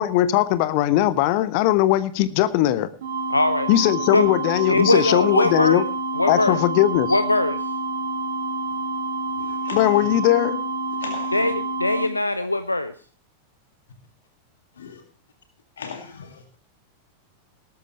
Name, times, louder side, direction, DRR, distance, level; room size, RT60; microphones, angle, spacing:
voice 1, 0.0-2.9 3.7-5.8 6.3-7.2 9.7-10.6, left 14 dB, 45° left, 1.0 m, -19 dB
sound 1, 3.0-12.1, right 3 dB, 60° right, 2.9 m, -28 dB
voice 2, 3.3-3.7 4.1-4.3 4.7-5.8 6.1-6.6 7.1-7.6 11.3-11.5 11.8-12.9, left 2 dB, 85° left, 0.7 m, -21 dB
voice 3, 9.4-10.2 11.0-11.4 14.7-15.0 15.8-16.4, left 6 dB, 65° left, 2.1 m, -37 dB
18.0 x 13.0 x 3.1 m
figure-of-eight pair, 90°, 0 cm